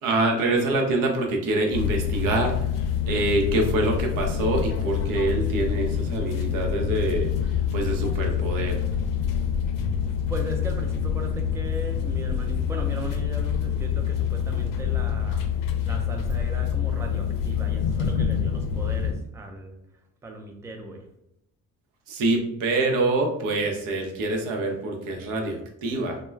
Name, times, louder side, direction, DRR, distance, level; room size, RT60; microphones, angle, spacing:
voice 1, 0.0-2.7 3.1-8.8 22.1-26.2, right 2 dB, 80° right, 2 dB, 0.7 m, -25 dB
sound 1, 1.7-19.1, left 8 dB, 75° left, 0.5 m, -26 dB
voice 2, 10.3-15.5 15.8-19.7 20.2-21.0, right 2 dB, 10° right, 3 dB, 0.4 m, -37 dB
2.2 x 2.1 x 3.2 m, 0.80 s
cardioid pair, 90°, 33 cm